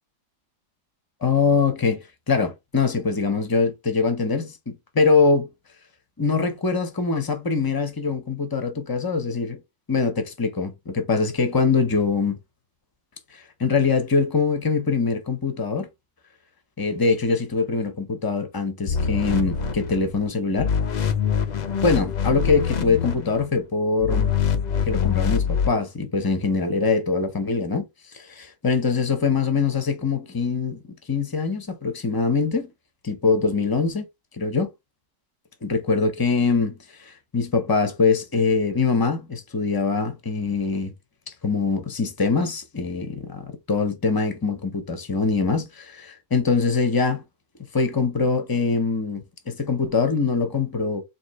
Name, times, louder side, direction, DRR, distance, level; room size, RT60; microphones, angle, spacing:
voice 1, 1.2-5.5 6.2-9.6 9.9-12.4 13.3-15.9 16.8-20.7 21.8-24.3 24.8-27.9 28.1-30.8 31.1-32.7 33.0-34.0 34.3-34.7 35.6-40.9 41.4-47.2 47.7-51.0, left 4 dB, 25° left, 0.5 m, -23 dB
sound 1, 18.9-20.3 20.6-23.5 24.0-25.7, left 7 dB, 90° left, 0.3 m, -24 dB
4.2 x 3.1 x 3.0 m
omnidirectional pair, 1.5 m